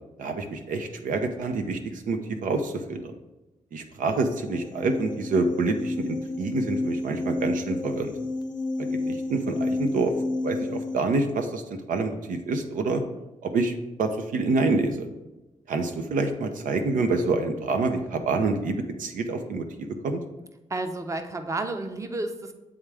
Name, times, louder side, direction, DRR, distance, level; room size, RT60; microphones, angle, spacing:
voice 1, 0.2-3.1 3.7-8.1 8.8-10.1 10.4-11.6 11.9-13.0 13.4-13.7 14.0-15.1 15.7-20.2, right 3 dB, 85° right, 6 dB, 0.7 m, -27 dB
sound 1, 4.2-11.0, left 2 dB, 35° left, 0.5 m, -31 dB
voice 2, 20.7-22.5, right 2 dB, 25° right, 7 dB, 0.6 m, -31 dB
8.8 x 3.6 x 3.4 m, 1.0 s
cardioid pair, 80°, 13 cm